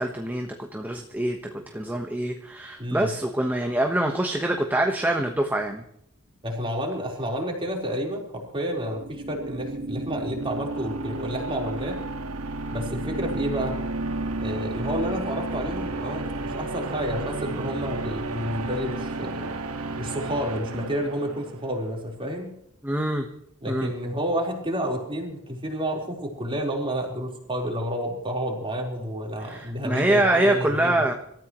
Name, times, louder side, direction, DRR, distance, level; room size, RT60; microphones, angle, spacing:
voice 1, 0.0-5.8 22.8-23.3 23.7-23.9 29.4-31.1, right 1 dB, 10° right, 3 dB, 1.2 m, -25 dB
voice 2, 2.8-3.1 6.4-12.0 12.7-13.8 14.4-19.6 20.0-22.5 23.6-31.2, equal, 25° right, 0 dB, 4.2 m, -30 dB
sound 1, 8.9-21.8, right 2 dB, 85° right, 1.8 m, -32 dB
26.0 x 14.0 x 3.1 m, 0.73 s
head